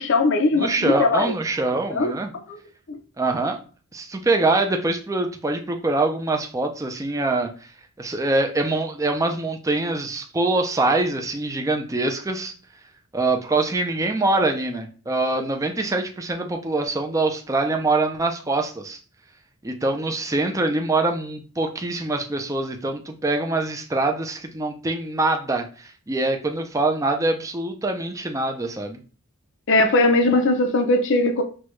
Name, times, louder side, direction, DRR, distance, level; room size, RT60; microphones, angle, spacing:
voice 1, 0.0-1.3 1.9-2.1 2.5-2.6 2.9-3.0 29.7-31.4, left 2 dB, 55° left, 0.6 m, -19 dB
voice 2, 0.5-2.3 3.2-3.6 3.9-7.5 8.0-12.5 13.1-19.0 19.6-29.0, right 2 dB, 15° right, 0.4 m, -24 dB
6.0 x 2.3 x 3.1 m
head